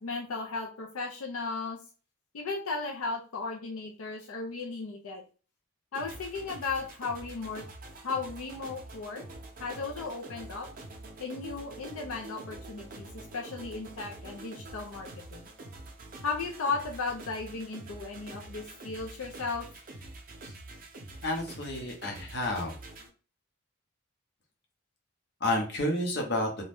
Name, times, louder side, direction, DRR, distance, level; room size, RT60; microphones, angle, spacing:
voice 1, 0.0-1.8 2.3-5.2 5.9-7.6 8.0-9.2 9.6-10.7 11.2-13.1 13.3-15.4 16.2-19.7, left 4 dB, 80° left, 1 dB, 0.5 m, -35 dB
sound 1, 5.9-23.1, right 2 dB, 40° right, 0.6 m, -46 dB
voice 2, 21.2-22.7 25.4-26.5, left 1 dB, 50° left, 1 dB, 0.8 m, -30 dB
2.6 x 2.2 x 3.4 m, 0.36 s
head